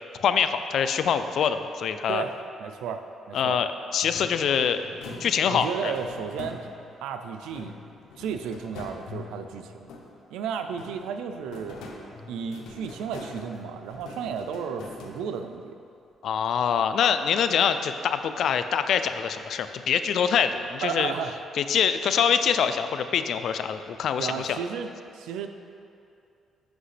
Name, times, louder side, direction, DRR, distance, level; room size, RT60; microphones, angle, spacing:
voice 1, 0.1-2.2 3.3-4.8 5.2-5.9 16.2-21.1 21.6-24.6, left 7 dB, 70° left, 10 dB, 0.3 m, -24 dB
voice 2, 2.1-3.6 5.5-6.6 7.0-7.7 8.2-9.9 10.3-11.8 12.3-15.8 20.8-21.3 24.2-25.5, right 7 dB, 90° right, 7 dB, 0.4 m, -33 dB
sound 1, 4.0-7.0 7.5-10.3 10.7-15.6, left 3 dB, 90° left, 0.8 m, -43 dB
7.9 x 5.7 x 3.3 m, 2.6 s
cardioid pair, 90°, 0 cm